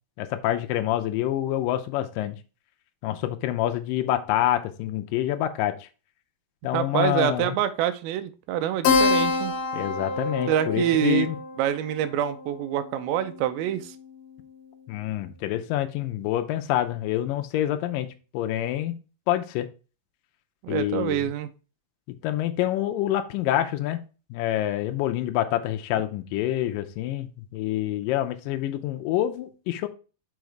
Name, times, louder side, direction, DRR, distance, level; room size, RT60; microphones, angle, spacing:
voice 1, 0.2-2.4 3.0-5.9 6.6-7.6 9.7-11.4 14.9-19.0 19.3-19.7 20.7-21.3 22.1-24.0 24.3-29.9, left 13 dB, 90° left, 7 dB, 1.9 m, -27 dB
voice 2, 6.7-9.5 10.5-11.3 11.6-14.0 20.6-21.5, right 11 dB, 80° right, 9 dB, 2.3 m, -26 dB
Keyboard (musical), 8.8-13.8, left 4 dB, 70° left, 2.3 m, -27 dB
5.7 x 5.3 x 4.6 m, 0.34 s
omnidirectional pair, 4.7 m